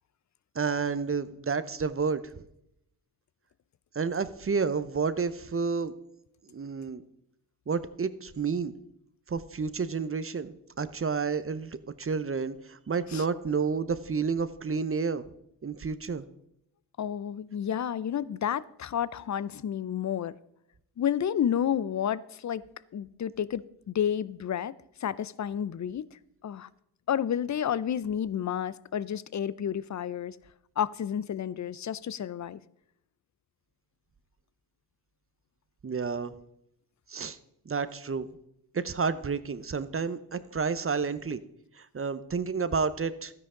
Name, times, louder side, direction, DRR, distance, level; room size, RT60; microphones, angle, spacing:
voice 1, 0.5-2.4 3.9-5.9 6.5-7.0 7.7-8.8 9.3-15.3 15.6-16.2 35.8-36.3 37.1-37.4 37.7-38.3 38.7-41.4 41.8-43.3, right 5 dB, 30° right, 13 dB, 0.8 m, -30 dB
voice 2, 17.0-20.3 21.0-22.6 22.9-24.7 25.0-26.0 26.4-26.7 27.1-30.4 30.8-32.6, left 9 dB, 40° left, 19 dB, 0.6 m, -30 dB
12.5 x 10.0 x 3.8 m, 0.78 s
supercardioid pair, 45°, 45 cm